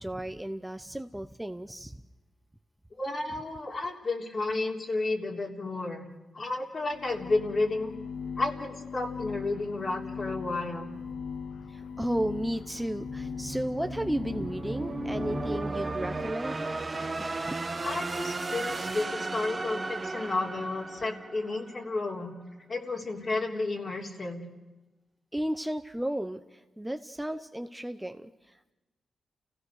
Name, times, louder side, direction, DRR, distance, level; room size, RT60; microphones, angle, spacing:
voice 1, 0.0-2.0 11.7-16.7 17.2-17.6 25.3-28.7, right 1 dB, 5° right, 8 dB, 0.8 m, -34 dB
voice 2, 3.0-6.1 6.3-8.0 8.4-10.9 17.8-22.3 22.7-24.4, left 2 dB, 45° left, 1 dB, 3.5 m, -32 dB
sound 1, 6.8-16.5, left 6 dB, 80° left, 0.6 m, -40 dB
sound 2, 11.1-22.1, right 3 dB, 30° right, 1.3 m, -36 dB
30.0 x 16.0 x 6.5 m, 1.1 s
cardioid pair, 75°, 0 cm